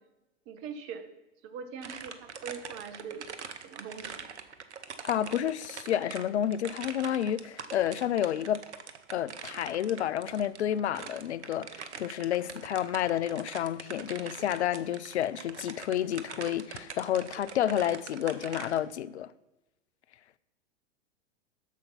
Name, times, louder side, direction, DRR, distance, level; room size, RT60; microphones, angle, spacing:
voice 1, 0.5-1.1 1.4-3.3 3.6-4.3 11.6-11.8, right 6 dB, 35° right, 1.1 m, -42 dB
sound 1, 1.8-18.8, right 6 dB, 70° right, 1.0 m, -44 dB
voice 2, 5.0-8.6 9.1-19.3, left 11 dB, 65° left, 0.5 m, -30 dB
8.2 x 6.9 x 5.6 m
figure-of-eight pair, 100°, 36 cm